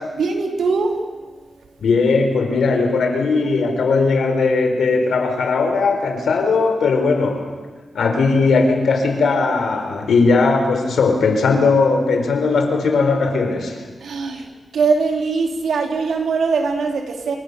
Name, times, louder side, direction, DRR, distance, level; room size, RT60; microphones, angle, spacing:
voice 1, 0.1-1.0 14.0-17.4, right 4 dB, 90° right, 2 dB, 3.9 m, -21 dB
voice 2, 1.8-7.5 7.9-13.8, left 4 dB, 90° left, 5 dB, 4.3 m, -18 dB
28.0 x 24.5 x 6.9 m, 1.3 s
wide cardioid pair, 90°, 0 cm